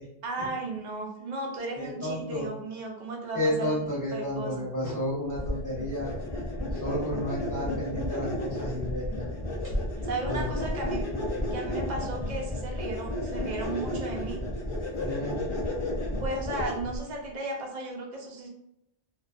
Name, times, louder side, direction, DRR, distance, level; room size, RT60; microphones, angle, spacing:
voice 1, 0.2-3.8 4.1-4.6 10.0-11.0 11.5-14.4 16.2-18.5, right 2 dB, 50° right, 0 dB, 0.6 m, -35 dB
voice 2, 1.8-2.5 3.3-6.1 6.7-9.3 10.3-10.6 15.0-15.4, left 1 dB, 15° left, -7 dB, 1.0 m, -32 dB
sound 1, 5.3-17.0, left 1 dB, 40° left, 0.4 m, -32 dB
2.5 x 2.2 x 2.4 m, 0.79 s
omnidirectional pair, 1.2 m